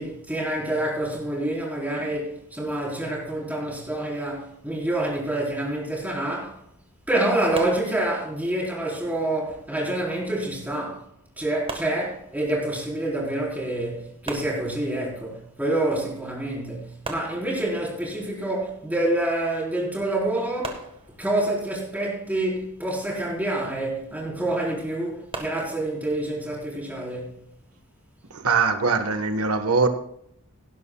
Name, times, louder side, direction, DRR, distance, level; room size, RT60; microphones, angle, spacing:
voice 1, 0.0-6.6 7.1-11.1 11.4-20.8 21.2-27.4, right 1 dB, 10° right, 4.1 m, -27 dB
sound 1, 7.5-8.5 11.7-12.7 14.2-15.2 17.0-18.0 20.6-21.6 25.3-25.9, right 3 dB, 25° right, 1.6 m, -39 dB
voice 2, 28.3-29.9, right 4 dB, 90° right, 1.3 m, -22 dB
17.5 x 11.5 x 2.3 m
head